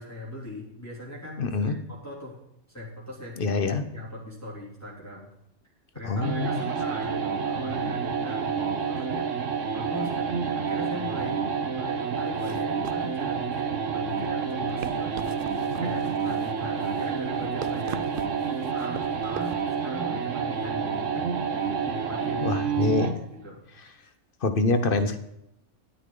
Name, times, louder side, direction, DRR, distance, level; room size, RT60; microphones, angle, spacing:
voice 1, 0.0-2.4 2.7-3.6 3.9-5.3 5.9-11.4 11.7-15.4 15.8-18.4 18.7-22.9 23.4-23.6, left 1 dB, 10° left, -6 dB, 3.1 m, -40 dB
voice 2, 1.4-1.7 3.4-3.8 6.0-6.6 22.4-23.1 24.4-25.2, left 3 dB, 45° left, 9 dB, 1.1 m, -25 dB
sound 1, 6.2-23.2, right 6 dB, 70° right, 1.4 m, -29 dB
sound 2, 12.4-19.6, right 7 dB, 55° right, 0.7 m, -42 dB
12.5 x 9.8 x 3.9 m, 0.80 s
omnidirectional pair, 1.4 m